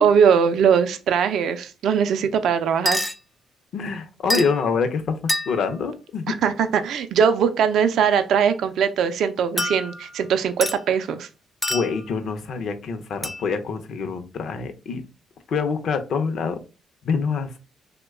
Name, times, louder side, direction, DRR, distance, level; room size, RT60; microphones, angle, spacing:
voice 1, 0.0-3.0 6.3-11.3, right 7 dB, 75° right, 9 dB, 0.3 m, -20 dB
sound 1, 2.9-3.2 4.3-4.6 5.3-5.8 9.6-10.2 10.6-10.8 11.6-12.1 13.2-13.4, left 1 dB, 10° left, 0.4 m, -26 dB
voice 2, 3.7-6.3 9.6-9.7 11.7-15.0 15.5-16.6 17.0-17.6, left 5 dB, 65° left, 8 dB, 0.5 m, -26 dB
3.0 x 2.2 x 3.4 m, 0.32 s
cardioid pair, 90°, 0 cm